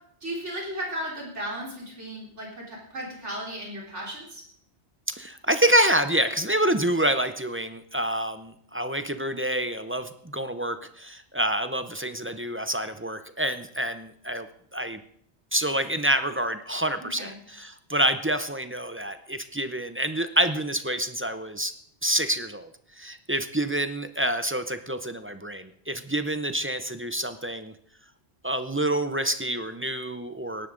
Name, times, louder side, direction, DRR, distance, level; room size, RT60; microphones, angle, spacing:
voice 1, 0.2-4.4 17.2-17.4, right 1 dB, 85° right, -3 dB, 4.1 m, -35 dB
voice 2, 5.1-14.5 14.7-15.0 15.5-21.7 22.0-22.7 23.0-27.7 28.4-30.7, right 1 dB, 15° right, 10 dB, 0.5 m, -27 dB
18.0 x 11.0 x 3.9 m, 0.67 s
omnidirectional pair, 1.2 m